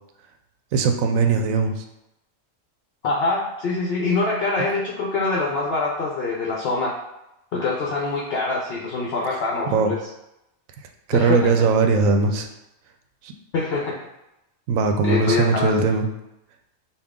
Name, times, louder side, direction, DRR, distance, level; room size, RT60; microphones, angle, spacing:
voice 1, 0.7-1.8 9.7-9.9 11.1-12.5 13.2-13.3 14.7-16.1, right 4 dB, 90° right, 5 dB, 1.0 m, -20 dB
voice 2, 3.0-6.9 7.5-10.0 11.1-11.5 13.5-14.0 15.0-15.9, left 3 dB, 60° left, -3 dB, 0.7 m, -24 dB
5.3 x 2.4 x 3.5 m, 0.89 s
omnidirectional pair, 1.3 m